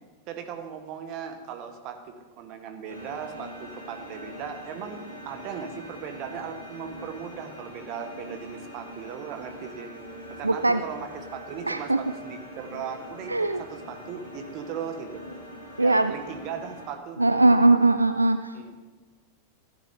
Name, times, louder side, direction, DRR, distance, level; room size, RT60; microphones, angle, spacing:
voice 1, 0.3-9.9 10.3-15.2 15.8-17.8 18.5-18.8, right 7 dB, 40° right, 6 dB, 1.3 m, -38 dB
sound 1, 2.9-16.9, left 1 dB, 75° left, 2.7 m, -43 dB
voice 2, 10.4-10.8 11.7-12.0 13.3-13.6 15.8-16.1 17.2-18.5, right 2 dB, 85° right, 10 dB, 0.3 m, -20 dB
14.5 x 10.0 x 3.5 m, 1.3 s
figure-of-eight pair, 90°, 0 cm